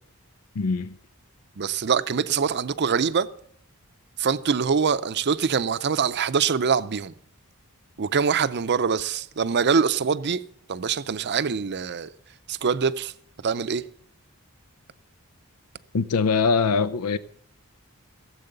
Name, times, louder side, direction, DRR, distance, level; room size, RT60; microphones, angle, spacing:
voice 1, 0.5-1.0 15.9-17.2, left 5 dB, 85° left, 0.5 m, -22 dB
voice 2, 1.6-3.3 4.2-7.1 8.0-10.4 10.7-12.1 12.5-13.1 13.4-13.8, right 6 dB, 50° right, 0.6 m, -24 dB
17.5 x 7.8 x 6.6 m
head